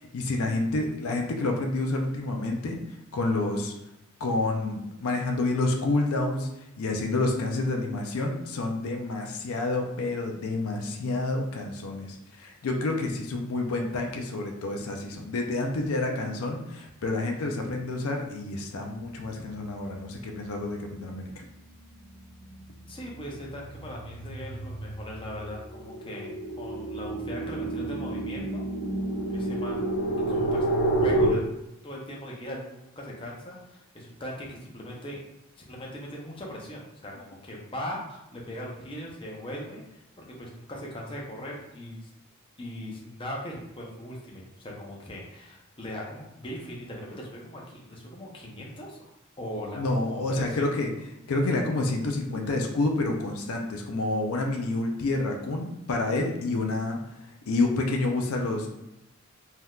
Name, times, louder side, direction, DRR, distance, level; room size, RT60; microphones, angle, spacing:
voice 1, 0.1-3.7 4.2-6.5 6.8-21.3 49.7-50.9 51.3-57.0 57.5-58.7, left 2 dB, 80° left, 2 dB, 0.5 m, -28 dB
sound 1, 21.6-22.0 22.4-31.3, right 2 dB, 60° left, 0.9 m, -29 dB
voice 2, 22.9-26.3 26.6-28.6 29.3-29.9 30.3-30.6 31.0-31.4 31.8-35.2 35.6-40.0 40.4-42.1 42.6-49.0 49.4-50.6, equal, 25° left, -3 dB, 0.7 m, -39 dB
3.5 x 2.8 x 2.3 m, 0.89 s
head